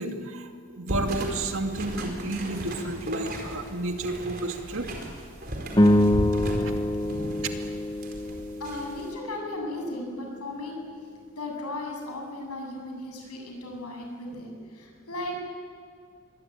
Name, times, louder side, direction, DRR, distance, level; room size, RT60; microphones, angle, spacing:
voice 1, 0.0-4.9 6.6-6.7 7.3-7.5, right 2 dB, 65° right, 4 dB, 2.4 m, -32 dB
sound 1, 0.9-9.1, right 1 dB, 40° right, 4.5 m, -36 dB
sound 2, 5.7-10.2, left 1 dB, 20° left, 0.8 m, -25 dB
voice 2, 8.6-10.8 11.4-15.4, left 1 dB, 90° left, 1 dB, 7.7 m, -36 dB
25.5 x 21.5 x 9.3 m, 2.2 s
head